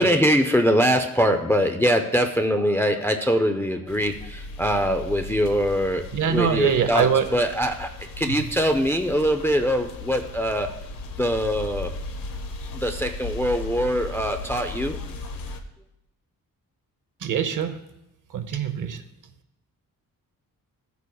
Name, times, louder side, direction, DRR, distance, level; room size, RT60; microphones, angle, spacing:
voice 1, 0.0-10.7 11.2-11.9 12.7-15.0, equal, 5° left, 5 dB, 0.4 m, -23 dB
sound 1, 3.9-15.6, left 2 dB, 70° left, 1.0 m, -37 dB
voice 2, 6.1-7.3 8.3-8.4 17.2-17.8 18.3-19.0, right 7 dB, 60° right, 9 dB, 0.8 m, -23 dB
15.0 x 8.2 x 2.3 m, 0.85 s
wide cardioid pair, 175°, 34 cm